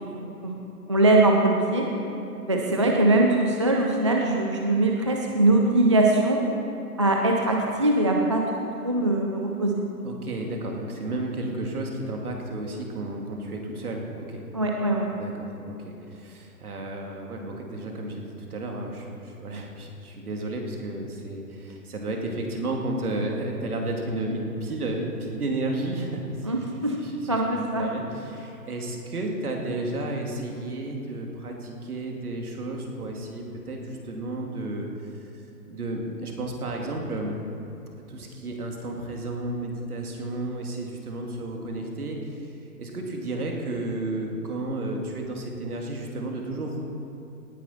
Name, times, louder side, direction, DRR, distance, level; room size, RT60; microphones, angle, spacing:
voice 1, 0.2-0.5 0.9-1.9 2.5-6.4 7.0-9.8 14.5-15.1 26.4-27.0 27.3-27.9, right 2 dB, 20° right, 0 dB, 0.4 m, -22 dB
voice 2, 10.0-14.4 15.2-26.4 26.7-37.4 38.1-46.8, right 2 dB, 65° right, 1 dB, 2.5 m, -32 dB
17.5 x 9.8 x 4.3 m, 2.9 s
figure-of-eight pair, 130°, 48 cm